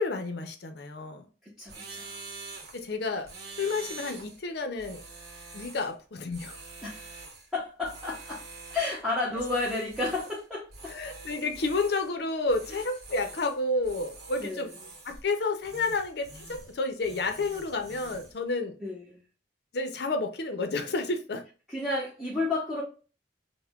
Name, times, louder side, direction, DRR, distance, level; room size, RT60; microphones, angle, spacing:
voice 1, 0.0-1.3 2.7-3.3 3.6-5.0 5.5-6.6 10.9-14.7 15.0-18.8 19.7-21.4, left 3 dB, 65° left, 0.5 m, -30 dB
voice 2, 1.4-2.2 6.8-7.1 7.5-8.4 8.7-10.9 14.4-14.7 18.8-19.2 21.7-22.8, left 2 dB, 5° right, 0.7 m, -32 dB
sound 1, 1.7-2.9 3.2-4.4 4.8-5.9 6.3-7.5 7.8-9.0 9.4-10.4 10.7-12.1 12.5-13.6 13.8-15.3 15.6-16.8 17.0-18.3, right 3 dB, 60° right, 1.0 m, -45 dB
5.5 x 2.1 x 2.3 m
head